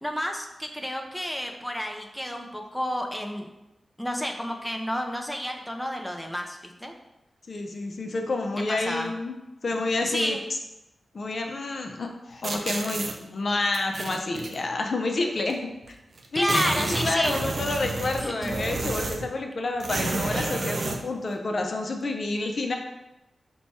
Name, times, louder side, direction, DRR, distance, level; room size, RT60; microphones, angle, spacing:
voice 1, 0.0-3.5 4.0-6.9 8.7-9.1 10.0-10.4 16.3-17.4 18.2-18.5, equal, 5° left, 2 dB, 0.4 m, -30 dB
voice 2, 7.5-9.4 9.6-10.4 11.1-15.7 16.3-22.7, left 2 dB, 55° left, 3 dB, 0.5 m, -29 dB
sound 1, 12.4-13.1 13.7-14.6 15.5-15.6 15.8-15.9 16.2-19.3 19.8-21.0, right 2 dB, 60° right, 0.4 m, -30 dB
4.4 x 2.2 x 4.1 m, 0.97 s
wide cardioid pair, 80°, 0 cm